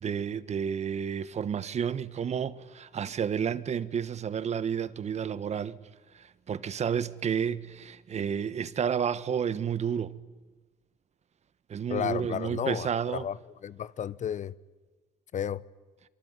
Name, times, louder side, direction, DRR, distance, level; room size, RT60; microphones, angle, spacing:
voice 1, 0.0-5.8 6.1-10.1 11.7-13.3, right 7 dB, 40° right, 1.3 m, -31 dB
voice 2, 11.9-13.4 13.6-14.6 15.3-15.6, left 9 dB, 45° left, 0.9 m, -32 dB
25.0 x 23.5 x 9.7 m
cardioid pair, 110°, 17 cm